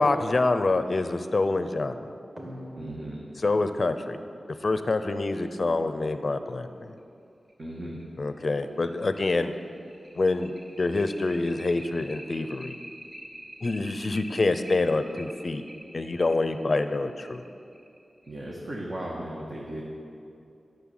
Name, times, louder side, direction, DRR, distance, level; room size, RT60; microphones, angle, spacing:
voice 1, 0.0-2.1 3.4-4.2 4.6-7.0 8.2-9.5 10.1-10.5 10.8-12.8 13.6-15.6 15.9-17.4, left 3 dB, 45° left, 10 dB, 0.7 m, -26 dB
sound 1, 2.4-5.5 7.0-7.1 7.5-7.6 8.0-8.1 8.5-18.6, equal, 20° right, 2.6 m, -46 dB
voice 2, 2.8-3.2 7.6-8.0 18.3-19.8, right 1 dB, 40° right, -4 dB, 1.7 m, -36 dB
12.5 x 6.7 x 9.6 m, 2.5 s
wide cardioid pair, 105°, 0 cm